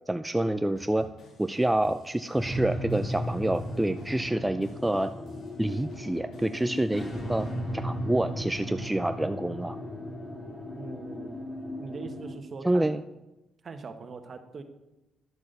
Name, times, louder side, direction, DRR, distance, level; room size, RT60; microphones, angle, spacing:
voice 1, 0.1-1.1 1.4-5.1 5.6-9.8 12.6-13.0, right 1 dB, 10° right, 9 dB, 0.4 m, -27 dB
sound 1, 0.8-7.6, left 3 dB, 65° left, 2.9 m, -53 dB
sound 2, 2.4-12.4, equal, 45° left, 3.0 m, -36 dB
voice 2, 10.8-11.4 11.8-13.0 13.6-14.6, right 4 dB, 45° right, 7 dB, 1.3 m, -41 dB
10.5 x 6.2 x 6.7 m, 0.99 s
cardioid pair, 90°, 0 cm